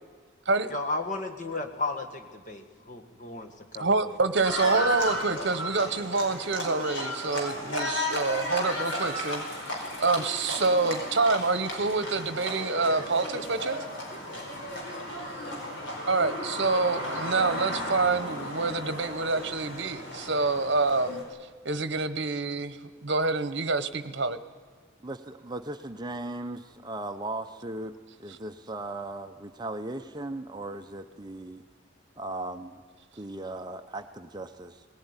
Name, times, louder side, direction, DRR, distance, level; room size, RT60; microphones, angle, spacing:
voice 1, 0.7-4.0 4.6-4.7, left 2 dB, 40° left, 4 dB, 1.8 m, -34 dB
voice 2, 3.8-9.4 10.0-13.8 16.1-21.2 21.6-24.4, right 3 dB, 55° right, 13 dB, 1.0 m, -27 dB
Livestock farm animals working animals, 4.4-21.2, left 1 dB, 60° left, 4.8 m, -34 dB
voice 3, 25.0-31.6 32.2-32.8 33.2-34.8, right 2 dB, 20° right, 7 dB, 0.6 m, -37 dB
19.5 x 18.0 x 9.8 m, 1.5 s
head